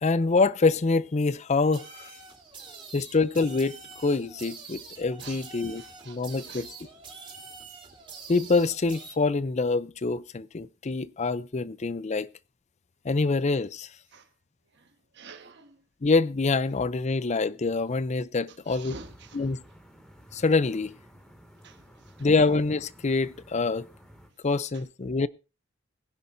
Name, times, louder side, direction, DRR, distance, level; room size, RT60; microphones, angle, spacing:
voice 1, 0.0-2.1 2.9-6.7 8.3-12.3 13.0-13.9 16.0-19.0 19.3-19.6 20.3-20.9 22.2-23.9 24.4-25.3, left 3 dB, 35° left, 0.5 m, -25 dB
sound 1, 1.7-9.1, right 4 dB, 25° right, 3.2 m, -45 dB
voice 2, 5.8-6.7 14.1-14.3 14.7-15.8 18.7-19.4 21.6-21.8, right 4 dB, 55° right, 1.4 m, -47 dB
sound 2, 18.8-24.3, equal, 5° left, 2.3 m, -53 dB
22.0 x 10.5 x 2.7 m
head